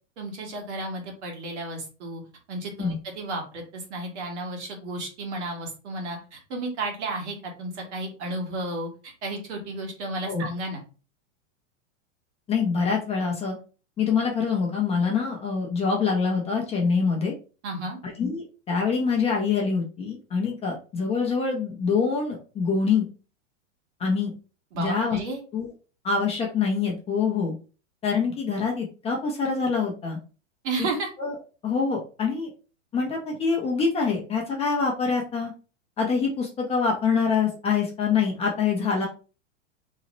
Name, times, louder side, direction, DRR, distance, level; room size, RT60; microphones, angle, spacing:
voice 1, 0.2-2.2 2.5-10.8 17.6-18.0 24.7-25.4 30.6-31.1, right 2 dB, 65° right, 1 dB, 1.5 m, -33 dB
voice 2, 12.5-13.5 14.0-17.3 18.0-23.1 24.0-24.3 24.8-25.2 25.5-25.7 26.0-27.5 28.0-30.2 30.8-30.9 31.2-31.4 31.6-32.5 32.9-35.5 36.0-39.1, left 5 dB, 15° left, -1 dB, 0.6 m, -25 dB
3.0 x 2.0 x 3.8 m, 0.35 s
supercardioid pair, 140°, 38 cm